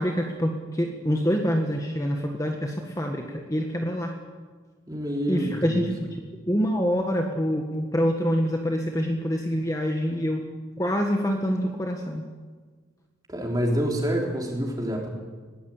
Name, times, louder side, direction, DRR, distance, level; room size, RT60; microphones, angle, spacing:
voice 1, 0.0-4.1 5.3-5.9 6.5-10.4 10.8-12.2, equal, 15° left, 2 dB, 1.5 m, -26 dB
voice 2, 4.9-5.9 13.3-15.1, equal, 20° right, 0 dB, 3.8 m, -27 dB
20.5 x 18.0 x 8.7 m, 1.5 s
head